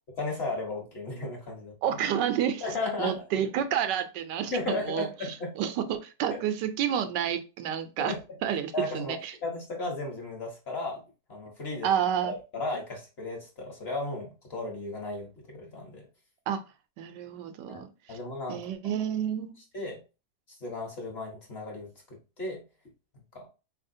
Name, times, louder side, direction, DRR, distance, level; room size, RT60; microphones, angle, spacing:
voice 1, 0.2-1.7 2.6-3.2 4.5-5.5 6.3-6.4 8.0-8.2 8.7-9.1 9.4-11.0 11.3-11.9 12.2-16.0 17.7-17.8 18.1-18.6 19.7-20.0 20.6-21.9 22.4-22.6 23.3-23.5, left 2 dB, 40° left, 0 dB, 1.2 m, -34 dB
voice 2, 1.8-2.6 3.0-5.1 5.6-8.1 8.4-9.3 11.8-12.3 16.5-16.6 17.0-18.2 18.5-19.5, right 9 dB, 85° right, 9 dB, 1.3 m, -29 dB
4.2 x 3.2 x 2.6 m, 0.30 s
omnidirectional pair, 1.8 m